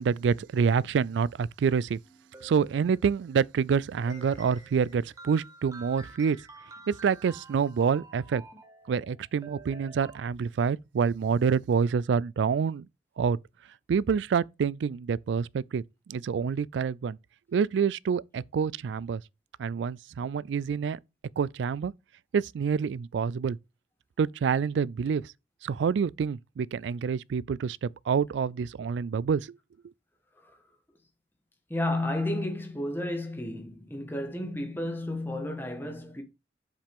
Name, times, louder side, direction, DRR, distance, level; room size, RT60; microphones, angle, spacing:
voice 1, 0.0-2.0 2.4-6.4 6.9-8.4 8.9-12.9 13.2-13.4 13.9-15.8 16.1-17.2 17.5-19.2 19.6-21.0 21.4-21.9 22.3-23.6 24.2-25.2 25.6-29.5, right 6 dB, 90° right, 0.3 m, -27 dB
sound 1, 2.0-3.4 4.1-10.2, right 3 dB, 20° right, 1.3 m, -50 dB
voice 2, 31.7-36.2, left 1 dB, 10° left, 1.5 m, -32 dB
7.4 x 7.3 x 3.6 m
head